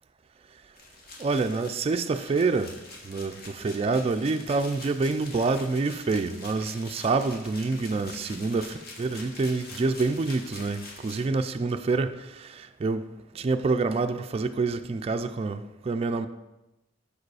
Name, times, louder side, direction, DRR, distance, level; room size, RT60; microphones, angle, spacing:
sound 1, 0.7-11.9, left 2 dB, 55° left, 1.2 m, -45 dB
voice 1, 1.2-2.7 3.0-13.1 13.3-16.3, right 3 dB, 30° right, 0.3 m, -27 dB
6.7 x 4.9 x 4.7 m
head